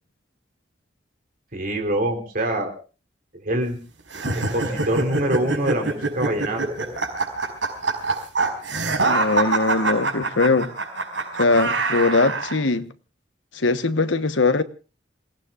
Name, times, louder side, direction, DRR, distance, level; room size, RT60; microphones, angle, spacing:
voice 1, 1.5-2.7 3.4-3.8 4.3-6.6, right 1 dB, 50° right, 3.7 m, -25 dB
sound 1, 4.1-12.6, right 3 dB, 80° right, 5.2 m, -25 dB
voice 2, 9.0-10.7 11.4-12.9 13.5-14.6, left 3 dB, 85° left, 1.2 m, -21 dB
29.0 x 18.0 x 2.5 m
head